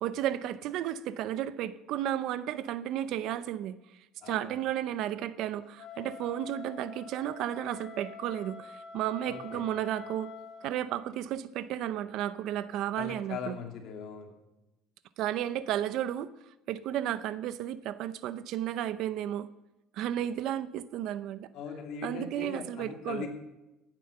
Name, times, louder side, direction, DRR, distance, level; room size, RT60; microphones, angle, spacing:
voice 1, 0.0-3.7 4.3-10.3 10.6-13.6 15.2-16.3 16.7-19.5 19.9-21.5 22.0-23.3, right 11 dB, 60° right, 14 dB, 0.6 m, -33 dB
voice 2, 4.2-4.5 9.3-9.6 13.0-14.3 21.5-23.3, left 6 dB, 60° left, 3 dB, 2.8 m, -40 dB
Wind instrument woodwind instrument, 5.7-10.8, left 7 dB, 40° left, 2.7 m, -46 dB
15.5 x 9.1 x 6.6 m, 0.99 s
cardioid pair, 150°, 0 cm